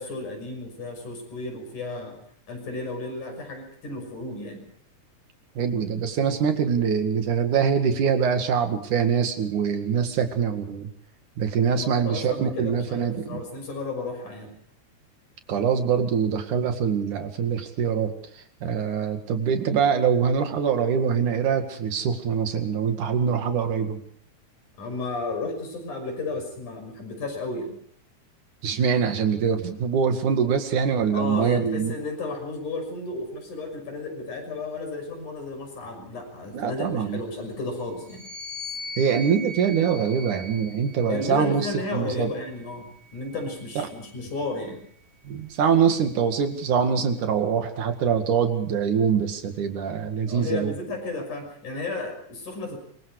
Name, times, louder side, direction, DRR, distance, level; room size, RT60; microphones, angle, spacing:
voice 1, 0.0-2.2 2.5-4.6 11.7-14.5 24.8-27.7 31.1-38.2 41.1-44.8 50.3-52.8, left 3 dB, 85° left, 3 dB, 7.6 m, -33 dB
voice 2, 5.6-10.9 11.4-13.4 15.5-18.1 18.6-24.0 28.6-31.9 36.5-37.2 39.0-42.3 43.8-43.9 45.3-50.7, right 7 dB, 85° right, 7 dB, 3.6 m, -24 dB
sound 1, 38.0-41.6 42.4-44.0, left 1 dB, 55° right, 7.4 m, -40 dB
26.0 x 23.5 x 4.9 m, 0.63 s
omnidirectional pair, 3.4 m